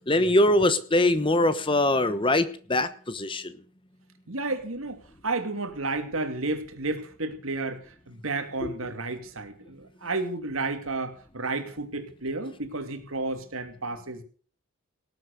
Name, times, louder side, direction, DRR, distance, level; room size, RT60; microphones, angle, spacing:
voice 1, 0.1-3.5 8.6-8.7, left 1 dB, 25° left, 12 dB, 1.0 m, -23 dB
voice 2, 4.3-14.2, right 3 dB, 75° right, 7 dB, 2.6 m, -32 dB
18.5 x 8.3 x 6.6 m, 0.42 s
head